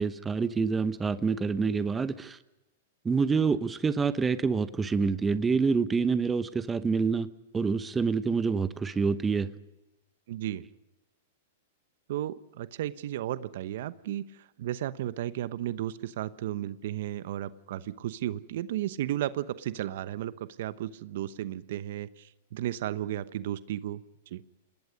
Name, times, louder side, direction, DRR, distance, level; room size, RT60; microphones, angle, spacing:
voice 1, 0.0-2.4 3.0-7.3 7.5-9.5, right 5 dB, 15° right, 1.0 m, -27 dB
voice 2, 10.3-10.6 12.1-14.2 14.6-20.3 20.6-24.0 24.3-24.4, right 13 dB, 65° right, 0.9 m, -34 dB
27.5 x 19.5 x 5.3 m
hypercardioid pair, 115°, 0 cm